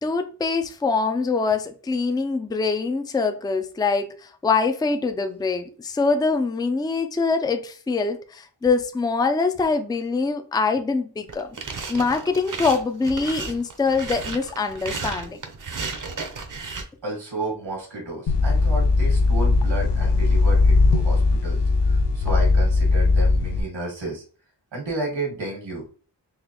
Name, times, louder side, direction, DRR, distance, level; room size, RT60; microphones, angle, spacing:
voice 1, 0.0-11.5 11.9-15.4, left 4 dB, 10° left, 0.4 m, -24 dB
sound 1, 11.3-16.8, right 4 dB, 45° right, 0.7 m, -33 dB
voice 2, 17.0-24.2 24.7-25.9, right 2 dB, 85° right, 1.8 m, -32 dB
sound 2, 18.3-23.6, left 3 dB, 70° left, 0.5 m, -19 dB
4.0 x 2.9 x 2.9 m
wide cardioid pair, 80°, 44 cm